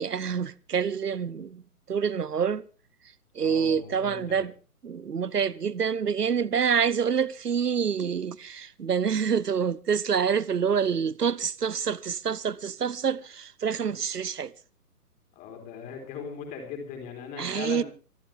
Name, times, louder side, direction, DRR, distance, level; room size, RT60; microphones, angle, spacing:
voice 1, 0.0-1.6 1.9-2.6 3.3-4.5 4.8-14.5 17.4-17.8, right 7 dB, 80° right, 0.8 m, -27 dB
voice 2, 3.4-4.5 15.4-17.8, left 6 dB, 15° left, 4.0 m, -39 dB
25.5 x 12.5 x 3.6 m
figure-of-eight pair, 135°, 46 cm